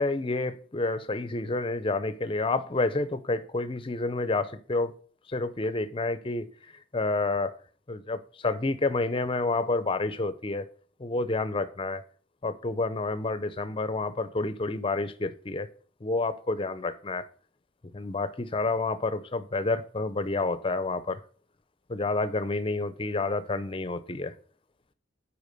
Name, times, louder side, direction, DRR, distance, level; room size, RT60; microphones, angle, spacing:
voice 1, 0.0-4.9 5.3-6.5 6.9-7.5 7.9-10.7 11.0-12.0 12.4-15.7 16.0-17.2 17.9-21.2 21.9-24.3, left 3 dB, 30° left, 13 dB, 0.6 m, -29 dB
8.2 x 4.9 x 5.2 m, 0.43 s
head